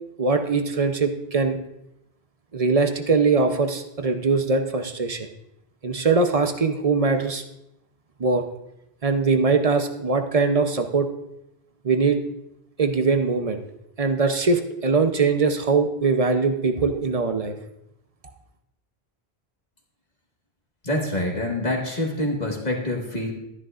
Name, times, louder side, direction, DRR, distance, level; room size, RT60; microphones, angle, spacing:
voice 1, 0.2-1.6 2.5-5.3 5.8-7.4 8.2-8.4 9.0-11.1 11.8-12.2 12.8-13.6 14.0-17.5, right 4 dB, 40° right, 7 dB, 0.7 m, -21 dB
voice 2, 20.8-23.3, left 1 dB, 40° left, 0 dB, 1.6 m, -26 dB
12.5 x 11.0 x 2.5 m, 0.85 s
omnidirectional pair, 1.1 m